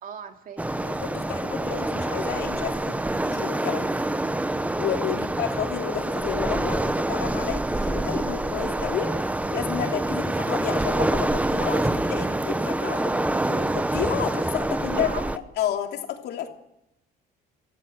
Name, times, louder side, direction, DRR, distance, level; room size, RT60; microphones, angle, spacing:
voice 1, 0.0-0.7 5.1-5.4 14.7-15.3, right 7 dB, 55° right, 5 dB, 2.5 m, -39 dB
Waves surf, 0.6-15.4, right 1 dB, 10° right, 1.0 m, -26 dB
voice 2, 0.8-3.9 4.8-13.2 13.5-15.1 15.6-16.5, left 10 dB, 75° left, 4 dB, 2.9 m, -31 dB
25.0 x 14.5 x 7.9 m, 0.85 s
cardioid pair, 110°, 17 cm